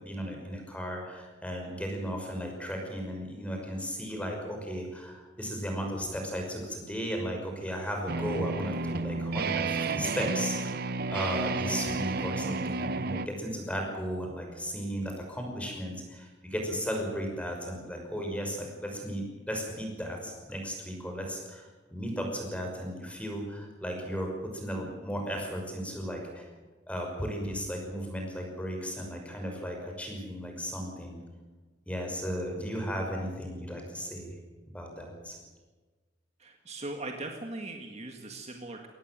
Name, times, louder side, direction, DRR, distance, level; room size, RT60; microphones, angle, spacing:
voice 1, 0.0-21.6 21.9-26.5 26.9-31.2 31.9-34.3 34.7-35.4, equal, 5° left, 2 dB, 5.7 m, -35 dB
sound 1, 8.1-13.3, right 3 dB, 50° right, 0.8 m, -31 dB
voice 2, 36.4-38.9, right 2 dB, 35° right, 4 dB, 1.9 m, -39 dB
23.5 x 18.5 x 7.6 m, 1.3 s
head